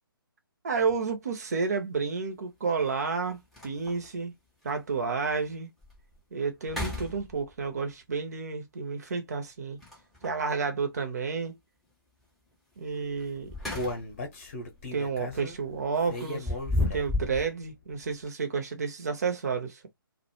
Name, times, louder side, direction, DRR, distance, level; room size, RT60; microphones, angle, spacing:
voice 1, 0.6-4.3 4.6-5.7 6.3-9.8 10.2-11.6 12.8-13.5 14.9-16.5 16.9-19.8, right 5 dB, 45° right, 0.6 m, -31 dB
sound 1, 0.8-0.9 2.7-2.8 3.2-3.3 3.5-4.1 4.7-4.8 5.3-5.4 5.8-6.2 6.6-7.7 9.8-10.4 13.2-14.3 14.6-14.9 16.1-17.5, left 2 dB, ahead, 0.5 m, -33 dB
Human voice, 13.1-17.3 17.7-17.8 18.2-18.3, left 2 dB, 35° left, 0.7 m, -37 dB
2.1 x 2.0 x 2.9 m
figure-of-eight pair, 140°, 12 cm